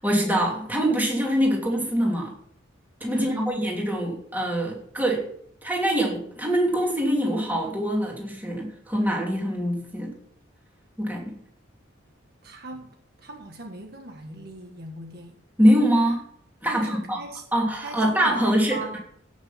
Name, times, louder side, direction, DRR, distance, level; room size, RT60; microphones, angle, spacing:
voice 1, 0.0-2.3 3.0-5.2 5.6-10.1 11.0-11.4 15.6-16.2 16.6-17.2 17.5-19.0, equal, 10° right, -1 dB, 3.0 m, -24 dB
voice 2, 3.1-3.7 12.4-12.9 13.2-15.3 16.7-17.4 17.8-19.0, right 1 dB, 50° right, 3 dB, 1.5 m, -39 dB
16.5 x 6.5 x 5.8 m, 0.65 s
head